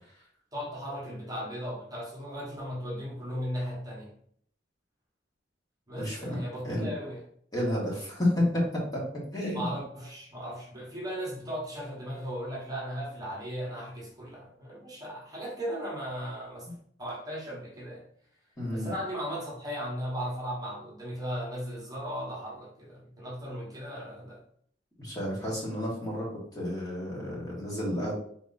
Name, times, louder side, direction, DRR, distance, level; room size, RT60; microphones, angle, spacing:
voice 1, 0.5-4.1 5.9-7.2 9.5-16.7 17.0-18.1 18.7-24.4, equal, 20° right, -5 dB, 1.2 m, -37 dB
voice 2, 6.0-6.4 6.6-6.9 7.5-9.0 9.3-9.8 18.6-18.9 25.0-28.1, left 1 dB, 20° left, -5 dB, 1.5 m, -31 dB
4.0 x 2.9 x 4.0 m, 0.62 s
head